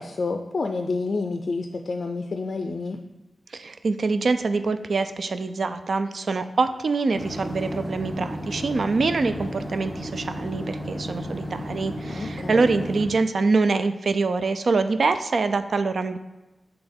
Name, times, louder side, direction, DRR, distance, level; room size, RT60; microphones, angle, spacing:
voice 1, 0.0-3.0 12.1-12.6, left 3 dB, 60° left, 5 dB, 0.4 m, -29 dB
voice 2, 3.5-16.2, right 3 dB, 65° right, 10 dB, 0.4 m, -24 dB
sound 1, 7.1-13.1, equal, 30° right, 1.5 m, -33 dB
7.8 x 3.2 x 4.3 m, 1.1 s
wide cardioid pair, 125°, 0 cm